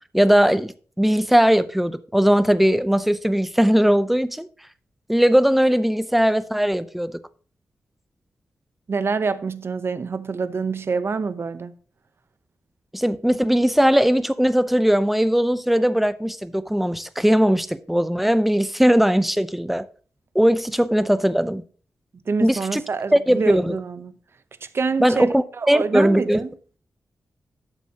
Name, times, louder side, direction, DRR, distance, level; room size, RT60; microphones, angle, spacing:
voice 1, 0.1-4.5 5.1-7.2 12.9-19.9 20.3-21.6 22.4-22.8 23.1-23.8 25.0-26.4, equal, 5° right, 0.5 m, -19 dB
voice 2, 8.9-11.7 22.3-24.1 24.7-26.5, right 4 dB, 50° right, 0.8 m, -26 dB
12.0 x 7.1 x 2.9 m
wide cardioid pair, 90°, 5 cm